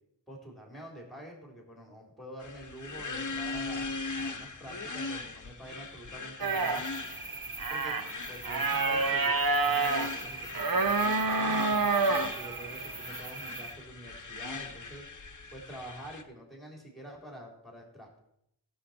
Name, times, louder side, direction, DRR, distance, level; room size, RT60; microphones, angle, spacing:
voice 1, 0.3-6.8 7.7-8.0 8.3-11.9 12.4-15.0 15.5-18.2, right 1 dB, ahead, -1 dB, 3.8 m, -47 dB
sound 1, 2.4-16.2, left 3 dB, 40° left, 1.0 m, -40 dB
sound 2, 6.4-13.7, right 3 dB, 50° right, 0.9 m, -29 dB
15.5 x 7.2 x 4.4 m, 0.76 s
wide cardioid pair, 40°, 45 cm